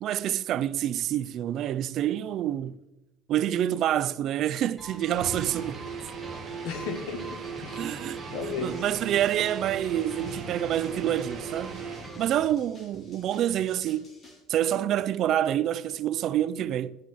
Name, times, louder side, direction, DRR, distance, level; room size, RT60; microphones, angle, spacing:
voice 1, 0.0-2.8 3.3-5.8 7.8-11.9 12.2-14.1 14.5-17.0, right 11 dB, 40° right, 0.5 m, -27 dB
sound 1, 4.8-12.5, right 1 dB, 5° left, 2.0 m, -45 dB
sound 2, 5.1-12.2, right 6 dB, 25° right, 2.5 m, -38 dB
voice 2, 6.6-8.9, left 6 dB, 70° left, 2.4 m, -36 dB
sound 3, 8.5-14.4, left 2 dB, 25° left, 3.3 m, -51 dB
10.5 x 10.0 x 7.8 m
cardioid pair, 165°, 0 cm